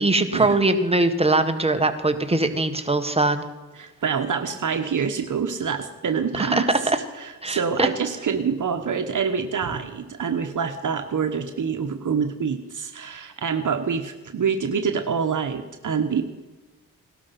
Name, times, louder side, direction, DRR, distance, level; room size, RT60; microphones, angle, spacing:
voice 1, 0.0-3.4 6.4-7.0 7.4-7.9, right 2 dB, 15° right, 7 dB, 1.6 m, -21 dB
voice 2, 3.8-16.2, right 6 dB, 60° right, 6 dB, 1.3 m, -26 dB
18.5 x 12.5 x 5.9 m, 1.2 s
cardioid pair, 70°, 34 cm